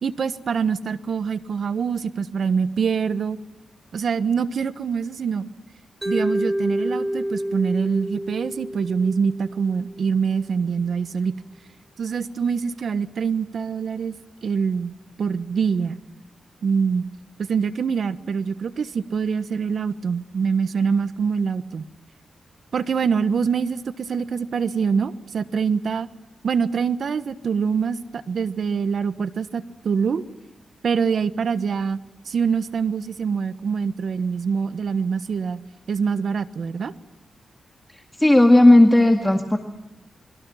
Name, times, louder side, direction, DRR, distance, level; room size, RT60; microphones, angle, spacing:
voice 1, 0.0-3.4 3.9-5.5 6.0-11.3 12.0-14.1 14.4-16.0 16.6-17.1 17.5-21.9 22.7-26.1 26.4-30.2 30.8-32.0 32.2-35.6 35.9-36.9, right 6 dB, 70° right, 13 dB, 1.2 m, -24 dB
Mallet percussion, 6.0-10.1, equal, 15° right, 2.9 m, -28 dB
voice 2, 37.9-39.6, left 1 dB, 15° left, 4 dB, 1.9 m, -14 dB
29.0 x 22.5 x 5.7 m, 0.98 s
cardioid pair, 65°, 0 cm